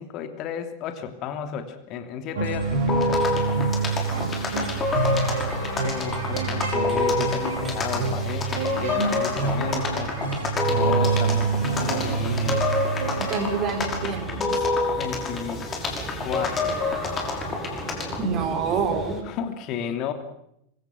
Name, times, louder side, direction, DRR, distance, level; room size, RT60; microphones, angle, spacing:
voice 1, 0.0-3.3 5.8-10.3 10.7-13.0 14.9-15.6 16.2-16.7 19.2-20.1, left 7 dB, 40° left, 8 dB, 2.9 m, -33 dB
sound 1, 2.4-14.6, right 4 dB, 55° right, 5.7 m, -27 dB
sound 2, 2.6-19.2, right 2 dB, 15° right, 5.7 m, -40 dB
sound 3, 2.9-18.2, left 3 dB, 20° left, 5.8 m, -28 dB
voice 2, 13.3-14.7 18.2-19.2, right 5 dB, 35° right, 7 dB, 4.0 m, -27 dB
25.0 x 24.0 x 6.2 m, 0.78 s
figure-of-eight pair, 90°, 0 cm